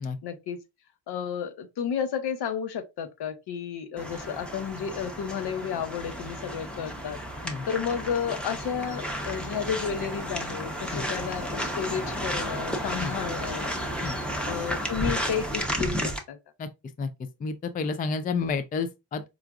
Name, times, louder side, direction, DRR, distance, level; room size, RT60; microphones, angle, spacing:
voice 1, 0.2-0.6 1.1-7.2 7.7-13.7 14.4-16.4, left 7 dB, 65° left, 0.8 m, -32 dB
sound 1, 4.0-16.2, equal, ahead, 0.7 m, -32 dB
voice 2, 17.4-19.2, left 4 dB, 20° left, 0.3 m, -30 dB
4.7 x 2.5 x 2.3 m
cardioid pair, 85°, 43 cm